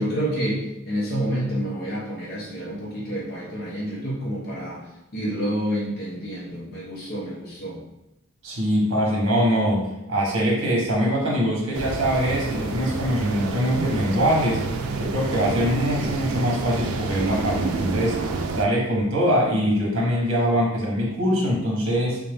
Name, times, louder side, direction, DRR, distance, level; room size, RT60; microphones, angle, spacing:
voice 1, 0.0-4.8 5.1-7.8, equal, 45° left, -6 dB, 1.0 m, -28 dB
voice 2, 8.4-14.6 14.9-22.2, equal, 65° right, -2 dB, 1.1 m, -23 dB
sound 1, 11.7-18.7, right 4 dB, 90° right, 0.4 m, -28 dB
3.6 x 2.6 x 3.4 m, 0.89 s
head